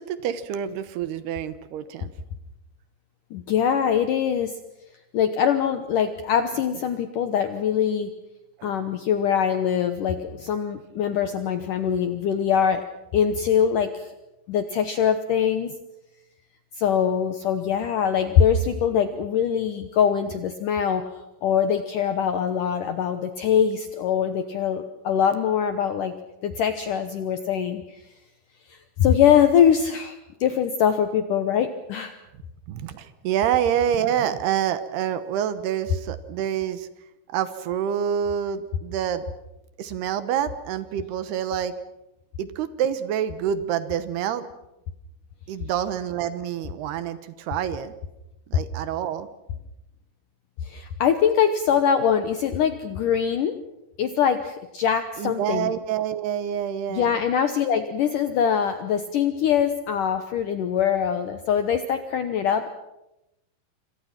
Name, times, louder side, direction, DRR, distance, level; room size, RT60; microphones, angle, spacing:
voice 1, 0.0-2.1 8.6-8.7 32.7-36.9 37.3-39.3 39.8-41.7 42.4-44.5 45.5-47.9 48.5-49.3 55.2-57.2, right 9 dB, 70° right, 12 dB, 2.9 m, -27 dB
voice 2, 3.3-4.6 5.1-8.1 8.6-12.8 13.1-14.1 14.5-15.7 16.8-21.0 21.4-26.1 26.4-27.8 28.7-32.1 50.6-53.5 54.0-55.7 56.9-62.7, left 8 dB, 70° left, 9 dB, 2.0 m, -23 dB
27.5 x 26.5 x 5.9 m, 0.91 s
omnidirectional pair, 5.1 m